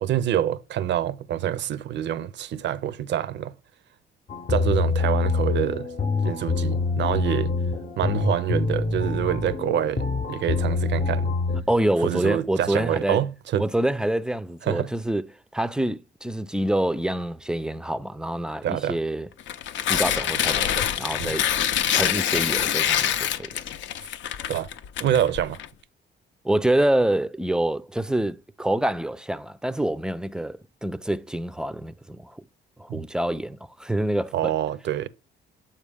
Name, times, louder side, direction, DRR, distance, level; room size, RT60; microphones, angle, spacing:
voice 1, 0.0-3.5 4.5-5.9 6.2-7.5 8.0-11.4 12.0-13.6 14.7-14.9 18.6-19.0 21.2-21.4 24.5-24.7 25.0-25.6 32.9-33.0 34.3-35.1, right 10 dB, 65° right, 0.5 m, -26 dB
sound 1, 4.3-11.6, left 4 dB, 40° left, 0.7 m, -25 dB
voice 2, 11.7-13.3 13.6-15.2 15.5-19.3 19.9-21.5 21.9-23.5 26.4-32.4 32.8-34.5, right 1 dB, 5° right, 0.4 m, -26 dB
Tearing, 19.4-25.7, left 10 dB, 75° left, 0.5 m, -25 dB
7.3 x 4.5 x 3.4 m
cardioid pair, 90°, 20 cm